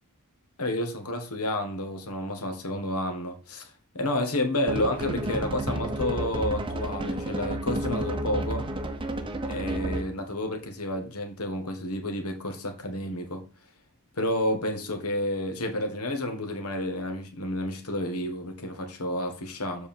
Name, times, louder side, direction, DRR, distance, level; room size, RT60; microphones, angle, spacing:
voice 1, 0.6-8.7 9.4-13.4 14.2-19.9, left 1 dB, 80° left, 1.7 m, -30 dB
sound 1, 4.7-10.2, right 1 dB, 20° right, 0.8 m, -31 dB
7.4 x 4.8 x 4.5 m
head